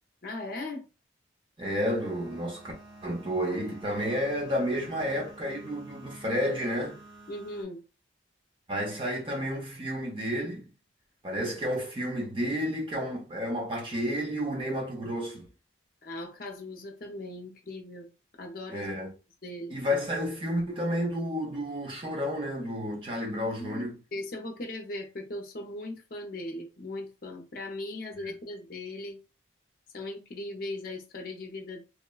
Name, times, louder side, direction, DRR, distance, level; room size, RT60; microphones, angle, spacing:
voice 1, 0.2-0.8 7.3-7.8 16.0-18.1 18.4-18.9 19.4-19.7 23.6-29.2 29.9-31.8, left 2 dB, 50° left, 0.6 m, -38 dB
voice 2, 1.6-2.7 3.0-7.0 8.7-10.7 11.2-15.5 18.7-19.1 19.7-23.9 28.2-28.3, equal, 30° right, 0.6 m, -31 dB
sound 1, 1.6-7.6, right 1 dB, 85° right, 0.9 m, -50 dB
3.0 x 2.1 x 2.2 m
head